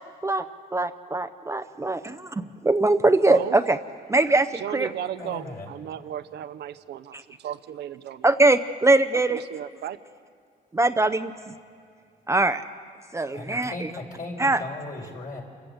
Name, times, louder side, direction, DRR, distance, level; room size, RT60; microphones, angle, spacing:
voice 1, 0.7-2.0 2.7-3.8 4.1-4.9 7.1-7.2 8.2-9.4 10.7-11.3 12.3-12.6 13.1-13.7 14.4-14.6, right 2 dB, 15° right, 8 dB, 0.7 m, -21 dB
voice 2, 4.5-8.3 9.3-10.0, right 11 dB, 80° right, 12 dB, 0.8 m, -34 dB
voice 3, 5.2-5.7 13.3-15.4, left 2 dB, 55° left, 1 dB, 4.6 m, -37 dB
27.5 x 15.5 x 8.0 m, 2.1 s
cardioid pair, 95°, 17 cm